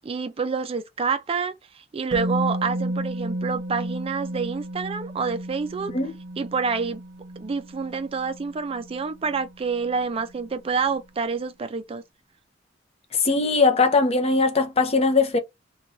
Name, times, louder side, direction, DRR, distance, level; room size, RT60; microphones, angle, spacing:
voice 1, 0.0-5.9 6.4-7.0 7.4-12.0, right 5 dB, 30° right, 0.4 m, -28 dB
Musical instrument, 2.1-10.0 10.3-10.5, right 1 dB, 65° right, 0.7 m, -33 dB
voice 2, 13.2-15.4, left 3 dB, 35° left, 0.6 m, -20 dB
2.5 x 2.3 x 3.0 m
head